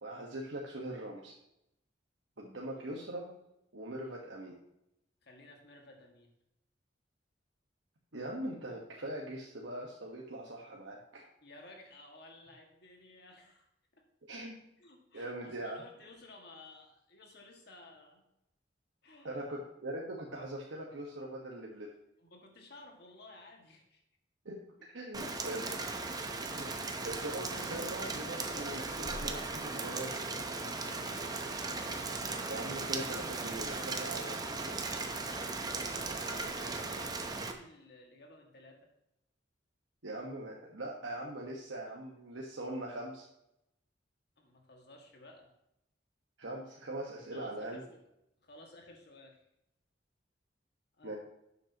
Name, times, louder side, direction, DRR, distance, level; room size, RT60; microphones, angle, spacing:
voice 1, 0.0-1.3 2.4-3.3 3.7-4.5 8.1-11.2 14.2-14.6 15.1-15.8 19.2-21.9 24.4-25.7 26.5-26.8 27.0-30.1 32.5-34.8 40.0-43.2 46.4-47.8 51.0-51.1, right 1 dB, 85° right, -2 dB, 1.4 m, -41 dB
voice 2, 2.6-3.0 5.2-6.3 11.4-13.7 13.9-14.1 14.8-18.2 19.0-19.5 22.2-24.0 24.8-24.9 30.7-31.5 35.5-38.9 44.4-45.5 47.3-48.0 48.4-49.5 51.0-51.2, left 2 dB, 60° left, 2 dB, 2.0 m, -56 dB
Rain, 25.1-37.5, right 3 dB, 20° right, 0.8 m, -37 dB
12.0 x 7.8 x 2.9 m, 0.82 s
head